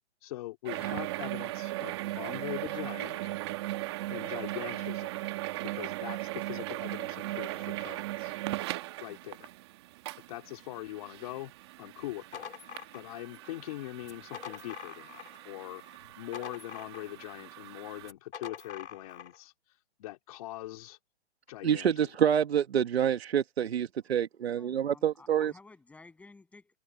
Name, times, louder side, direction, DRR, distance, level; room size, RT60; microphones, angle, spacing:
voice 1, 0.0-3.4 4.1-5.1 5.6-8.4 9.0-9.5 10.3-11.5 11.8-12.5 12.9-15.8 16.2-19.5 20.0-21.0 21.5-21.9, left 17 dB, 30° left, 3.7 m, -42 dB
sound 1, 0.7-18.1, right 17 dB, 25° right, 1.2 m, -38 dB
sound 2, 12.0-13.5 14.0-15.5 15.8-17.3 18.0-19.4, left 7 dB, 75° left, 4.2 m, -45 dB
voice 2, 21.6-25.5, right 9 dB, 65° right, 1.4 m, -27 dB
voice 3, 24.5-26.8, left 3 dB, 5° left, 7.9 m, -54 dB
hypercardioid pair, 165°, 34 cm